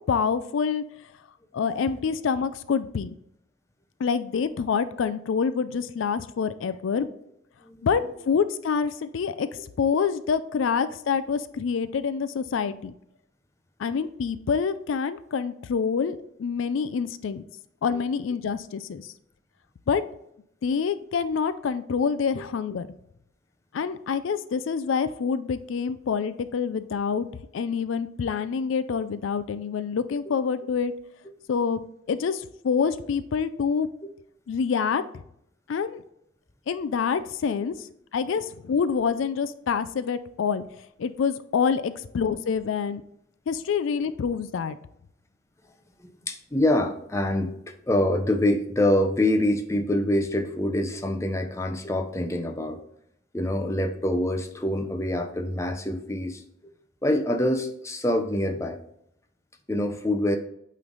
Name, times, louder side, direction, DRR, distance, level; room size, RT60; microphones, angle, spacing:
voice 1, 0.1-0.8 1.5-3.2 4.0-7.1 7.8-12.9 13.8-17.4 17.8-19.1 19.9-20.0 20.6-22.9 23.7-27.3 27.5-30.9 31.5-31.8 32.1-33.9 34.5-35.0 35.7-36.0 36.7-37.9 38.1-43.0 43.5-44.8, left 6 dB, 75° left, 13 dB, 0.4 m, -26 dB
voice 2, 1.6-2.0 7.6-7.9 46.0-52.8 53.3-56.4 57.0-58.8 59.7-60.4, left 1 dB, 15° left, 5 dB, 0.5 m, -25 dB
8.6 x 3.2 x 3.9 m, 0.73 s
head